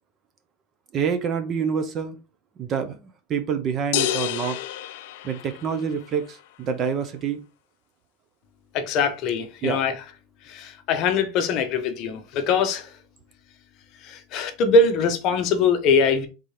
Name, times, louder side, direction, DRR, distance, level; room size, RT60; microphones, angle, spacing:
voice 1, 0.9-2.2 2.6-3.0 3.3-4.6 5.2-7.4 9.6-9.8, right 7 dB, 25° right, 0.5 m, -27 dB
sound 1, 3.9-6.0, left 12 dB, 60° left, 0.4 m, -29 dB
voice 2, 8.7-9.9 10.5-12.9 14.0-16.3, left 4 dB, 35° left, 0.7 m, -22 dB
4.2 x 3.7 x 3.2 m
supercardioid pair, 170°, 0 cm